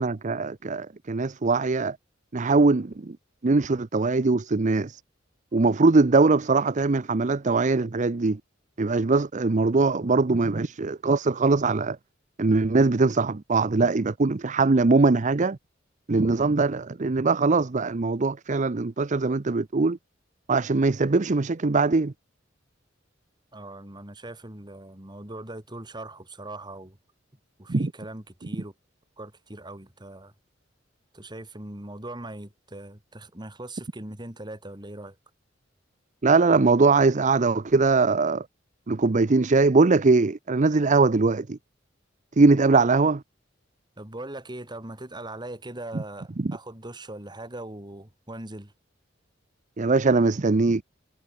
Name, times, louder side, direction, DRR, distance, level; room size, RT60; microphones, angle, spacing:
voice 1, 0.0-2.0 2.3-3.2 3.4-5.0 5.5-8.4 8.8-12.0 12.4-15.6 16.1-20.0 20.5-22.1 27.7-27.9 36.2-38.5 38.9-41.6 42.4-43.2 46.4-46.5 49.8-50.8, right 3 dB, 40° right, 0.6 m, -21 dB
voice 2, 23.5-27.0 27.6-28.7 29.2-30.3 31.1-35.2 44.0-48.7, right 1 dB, 25° right, 3.1 m, -40 dB
head